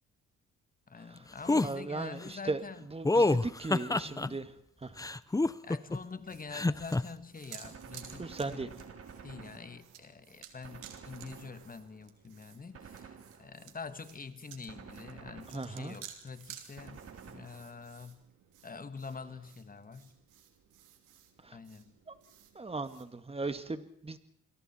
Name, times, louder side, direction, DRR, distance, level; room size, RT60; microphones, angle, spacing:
voice 1, 0.9-2.9 3.2-3.3 4.0-4.4 5.6-8.7 9.2-17.0 17.2-18.3 18.6-20.1 21.5-21.9, left 4 dB, 30° left, 11 dB, 1.6 m, -46 dB
sound 1, 1.5-1.7 3.1-4.3 5.0-6.0 6.5-7.0, left 2 dB, 10° left, 0.7 m, -27 dB
voice 2, 1.6-2.6 2.9-4.5 4.8-5.0 8.2-8.7 15.5-16.0 21.4-21.6 22.1-22.2 22.6-24.2, right 3 dB, 20° right, 10 dB, 1.9 m, -37 dB
sound 2, 5.9-23.0, right 9 dB, 90° right, 3.0 m, -55 dB
Gunshot gunfire, 7.6-10.1 10.6-12.1 12.7-13.8 14.7-16.1 16.8-18.0, right 6 dB, 50° right, 3.1 m, -51 dB
28.5 x 22.5 x 4.4 m, 0.70 s
cardioid pair, 90°, 30 cm